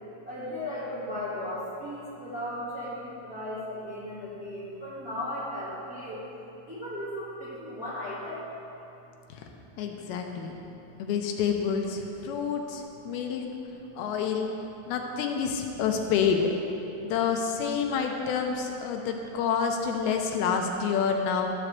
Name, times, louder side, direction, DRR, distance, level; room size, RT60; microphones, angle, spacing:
voice 1, 0.3-6.2 6.7-8.4, left 1 dB, 30° right, -11 dB, 1.7 m, -36 dB
voice 2, 9.8-10.6 11.0-13.4 14.0-14.5 14.9-16.5 17.0-21.5, left 6 dB, 80° left, 3 dB, 2.6 m, -28 dB
13.0 x 4.7 x 7.8 m, 3.0 s
omnidirectional pair, 4.6 m